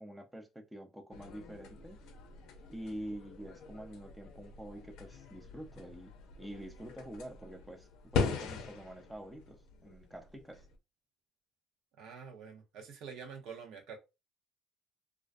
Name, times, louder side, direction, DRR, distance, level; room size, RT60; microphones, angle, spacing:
voice 1, 0.0-2.0 2.7-6.1 6.4-10.7, right 1 dB, 5° right, 0.5 m, -46 dB
sound 1, 1.1-10.8, left 5 dB, 80° left, 0.5 m, -41 dB
voice 2, 12.0-14.0, right 6 dB, 75° right, 0.7 m, -47 dB
2.4 x 2.1 x 2.5 m
cardioid pair, 95°, 0 cm